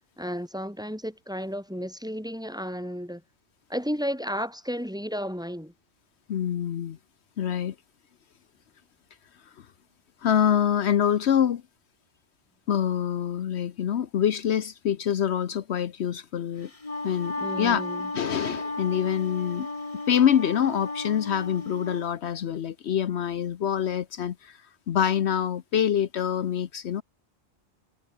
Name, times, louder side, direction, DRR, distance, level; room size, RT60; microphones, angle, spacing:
voice 1, 0.2-3.2 3.7-5.7 17.4-18.1, equal, 5° right, 4.1 m, -33 dB
voice 2, 6.3-7.0 7.4-7.7 9.6-9.7 10.2-11.6 12.7-16.7 17.0-17.8 18.1-19.7 20.1-24.6 24.9-27.0, left 9 dB, 75° left, 1.1 m, -25 dB
Wind instrument woodwind instrument, 16.6-22.1, left 2 dB, 30° left, 1.9 m, -34 dB
omnidirectional pair, 1.2 m